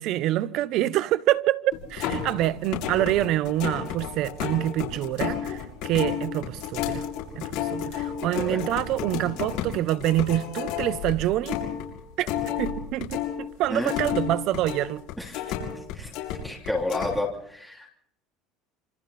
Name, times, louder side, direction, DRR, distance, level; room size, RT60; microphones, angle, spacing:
voice 1, 0.0-7.0 7.4-11.6 12.2-15.0, right 14 dB, 45° right, 0.7 m, -26 dB
sound 1, 1.7-13.3 13.6-16.4 16.6-17.1, left 9 dB, 55° left, 7.0 m, -31 dB
voice 2, 8.2-8.6 13.7-13.9 15.2-15.4 15.9-16.1 16.4-17.9, left 2 dB, ahead, 3.1 m, -30 dB
27.0 x 25.5 x 4.2 m
cardioid pair, 170°, 0 cm